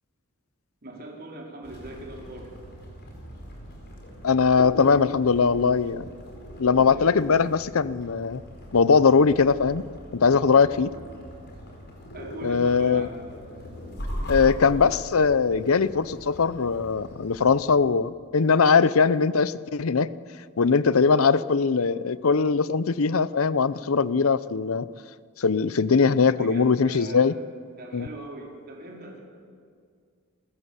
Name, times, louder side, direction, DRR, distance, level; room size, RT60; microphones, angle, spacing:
voice 1, 0.8-2.5 6.9-7.5 10.7-10.8 12.1-13.1 26.3-27.3 27.8-29.2, right 1 dB, 45° right, -1 dB, 4.5 m, -40 dB
sound 1, 1.6-17.7, equal, 50° left, 5.0 m, -40 dB
voice 2, 4.2-6.1 6.6-8.4 8.7-9.8 10.1-10.9 12.4-13.1 14.3-20.1 20.6-24.9 25.4-27.3 27.9-28.1, left 5 dB, 65° left, 17 dB, 0.6 m, -21 dB
28.5 x 14.5 x 8.2 m, 2.1 s
head